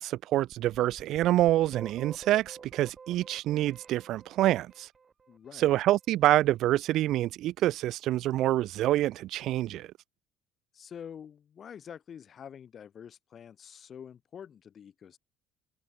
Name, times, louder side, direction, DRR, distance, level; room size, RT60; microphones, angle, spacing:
voice 1, 0.0-4.9 5.6-9.9, right 14 dB, 55° right, 1.1 m, -26 dB
sound 1, 0.5-5.4, right 5 dB, 30° right, 2.0 m, -49 dB
voice 2, 5.3-5.8 10.7-15.2, left 8 dB, 40° left, 4.0 m, -47 dB
figure-of-eight pair, 55°, 0 cm